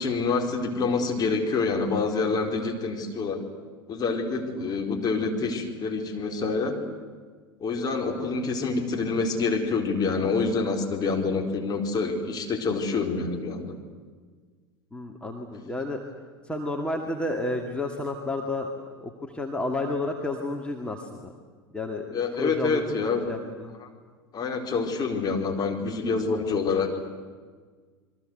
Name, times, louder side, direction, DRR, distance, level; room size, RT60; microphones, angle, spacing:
voice 1, 0.0-3.4 3.9-6.8 7.6-13.8 22.1-23.3 23.8-23.9 24.3-26.9, left 4 dB, 30° left, 2 dB, 4.3 m, -27 dB
voice 2, 14.9-16.0 16.4-18.7 19.0-21.3 21.7-22.9 23.2-23.7, left 2 dB, 10° left, 2 dB, 2.5 m, -31 dB
28.0 x 22.5 x 8.0 m, 1.5 s
figure-of-eight pair, 75°, 13 cm